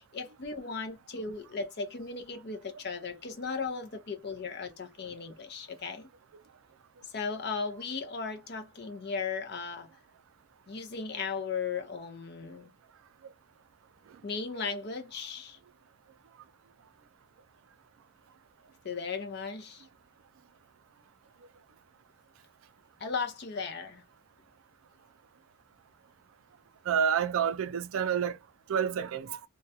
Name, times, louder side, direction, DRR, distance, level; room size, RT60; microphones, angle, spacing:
voice 1, 0.0-6.1 7.1-9.9 10.7-12.7 14.2-15.6 18.8-19.9 23.0-24.0, left 5 dB, 50° left, 0.5 m, -36 dB
voice 2, 26.9-28.4 28.7-29.4, right 8 dB, 75° right, 0.4 m, -28 dB
2.3 x 2.1 x 2.7 m
head